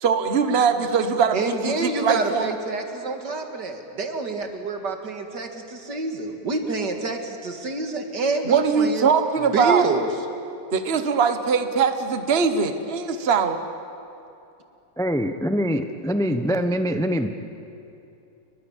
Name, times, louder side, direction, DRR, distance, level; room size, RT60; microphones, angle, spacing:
voice 1, 0.0-2.5 8.5-10.0 10.7-13.6, right 6 dB, 35° right, 9 dB, 1.4 m, -21 dB
voice 2, 1.3-9.1 9.5-10.1, right 3 dB, 65° right, 5 dB, 2.7 m, -27 dB
voice 3, 15.0-17.3, equal, 5° left, 8 dB, 0.6 m, -24 dB
29.0 x 23.5 x 7.4 m, 2.7 s
omnidirectional pair, 2.0 m